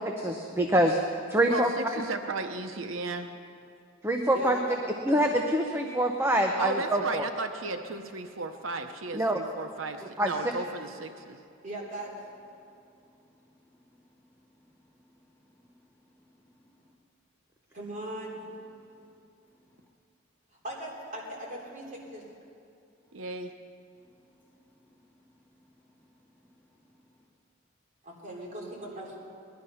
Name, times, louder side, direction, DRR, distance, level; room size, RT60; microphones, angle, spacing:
voice 1, 0.2-1.0 1.3-2.0 4.0-4.6 5.0-7.2 9.1-9.4 10.2-10.3, right 1 dB, 10° right, 3 dB, 0.8 m, -25 dB
voice 2, 1.5-3.3 6.6-11.4 23.1-23.5, right 3 dB, 85° right, 7 dB, 0.8 m, -35 dB
voice 3, 4.3-4.8 5.0-5.2 11.6-12.1 17.7-18.4 20.6-22.2 28.0-29.2, right 1 dB, 40° right, -3 dB, 3.7 m, -39 dB
voice 4, 12.9-13.7 14.3-14.6 16.7-16.8 18.9-19.1 19.7-19.8 24.8-24.9 25.5-26.7, left 1 dB, 10° left, -6 dB, 3.2 m, -65 dB
20.0 x 11.5 x 5.7 m, 2.5 s
head